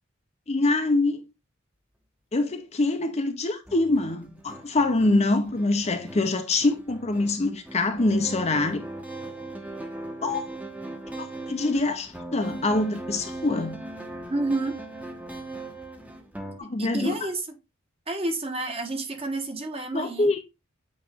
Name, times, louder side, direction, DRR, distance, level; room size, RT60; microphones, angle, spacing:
voice 1, 0.5-1.3 2.3-8.8 10.2-10.4 11.2-13.8 16.6-17.2 19.9-20.4, left 2 dB, 35° left, 0.7 m, -25 dB
sound 1, 3.7-16.6, right 2 dB, 5° right, 1.0 m, -39 dB
voice 2, 14.3-14.8 16.6-17.5 18.1-20.3, right 2 dB, 30° right, 1.2 m, -30 dB
8.7 x 3.2 x 3.5 m
head